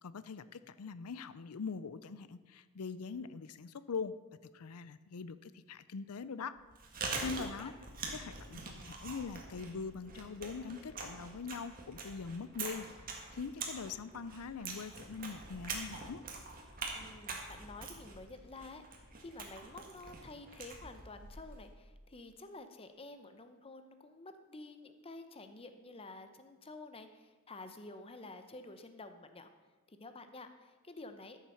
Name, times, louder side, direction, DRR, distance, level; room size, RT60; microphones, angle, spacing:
voice 1, 0.0-4.1 4.5-6.5 7.0-7.7 8.1-8.6 8.8-12.9 13.3-16.2, left 5 dB, 80° left, 15 dB, 0.5 m, -42 dB
Chewing mastication, 6.6-21.7, right 4 dB, 40° right, 1.8 m, -44 dB
voice 2, 7.4-7.7 16.9-18.8 19.2-29.5 29.9-31.4, left 2 dB, 25° left, 8 dB, 0.8 m, -50 dB
13.0 x 7.3 x 5.8 m, 1.3 s
head